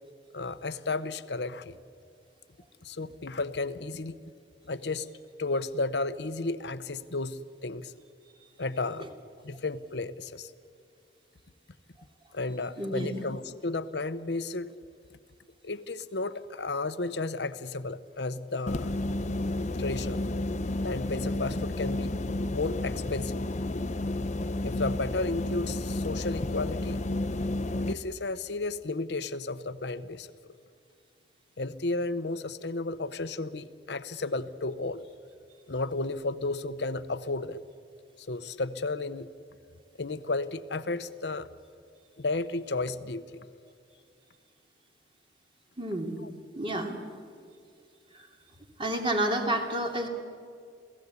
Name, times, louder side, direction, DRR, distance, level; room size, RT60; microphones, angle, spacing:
voice 1, 0.3-1.8 2.8-4.2 4.7-5.1 5.4-7.9 8.6-9.1 9.4-10.5 12.3-14.7 15.6-18.9 19.6-20.4 20.8-22.1 22.5-23.4 24.6-27.0 27.8-30.3 31.6-35.0 35.7-37.6 38.3-39.3 40.0-41.5 42.2-43.5 46.2-46.3, left 3 dB, 65° left, 13 dB, 0.9 m, -33 dB
voice 2, 12.8-13.2 45.8-46.2 46.5-47.0 48.1-48.3 48.8-50.1, right 1 dB, 30° right, 2 dB, 2.7 m, -30 dB
sound 1, 18.7-27.9, left 2 dB, 40° left, 0.8 m, -31 dB
28.5 x 17.5 x 8.3 m, 2.3 s
head